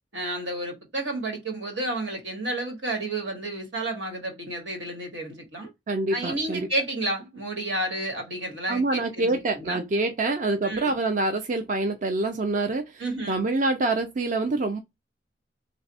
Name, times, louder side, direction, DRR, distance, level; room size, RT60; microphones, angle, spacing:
voice 1, 0.1-5.7 6.1-9.9 10.6-11.0 13.0-13.4, right 1 dB, 80° right, 1.5 m, -31 dB
voice 2, 5.9-6.7 8.7-13.0 13.3-14.8, right 2 dB, 45° right, 0.5 m, -26 dB
3.3 x 2.3 x 4.0 m
head